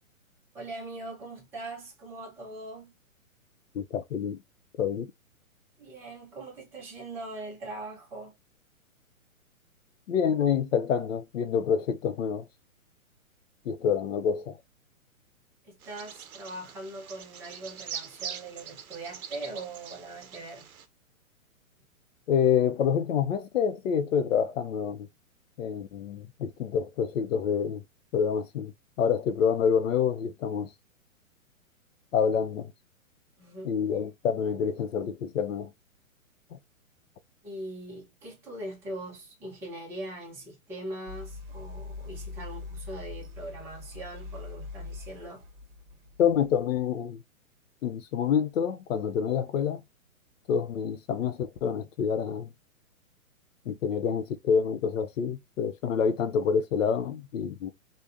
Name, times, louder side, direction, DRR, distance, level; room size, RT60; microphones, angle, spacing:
voice 1, 0.5-2.9 5.8-8.3 15.6-20.7 33.4-33.7 37.4-45.4, right 2 dB, 5° right, 0.5 m, -41 dB
voice 2, 3.7-4.4 4.8-5.1 10.1-12.4 13.6-14.6 22.3-25.1 25.6-27.8 28.1-28.7 29.0-30.7 32.1-32.7 33.6-35.7 36.5-36.6 46.2-47.2 47.8-49.8 50.5-52.5 53.7-57.7, left 7 dB, 65° left, 0.6 m, -27 dB
Bird vocalization bird call bird song, 15.8-20.8, right 8 dB, 90° right, 0.6 m, -43 dB
sound 1, 41.1-46.8, left 3 dB, 35° right, 0.8 m, -42 dB
3.3 x 2.2 x 2.4 m
hypercardioid pair, 135°, 42 cm